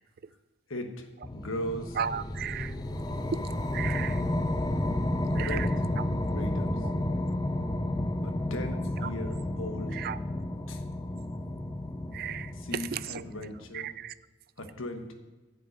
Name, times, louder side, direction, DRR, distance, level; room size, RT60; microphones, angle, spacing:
voice 1, 0.7-1.1 1.3-2.0 5.4-5.6 6.3-6.7 8.2-10.0 10.7-10.8 12.5-13.9 14.6-15.1, equal, 90° left, 1.3 m, -37 dB
sound 1, 1.2-13.7, left 1 dB, 20° left, 0.6 m, -31 dB
voice 2, 2.0-2.7 3.3-3.4 3.7-4.2 5.3-5.7 5.9-6.0 6.8-6.9 9.0-9.1 9.9-10.2 12.1-13.2 13.7-14.1, right 8 dB, 50° right, 0.3 m, -34 dB
10.5 x 5.4 x 8.1 m
head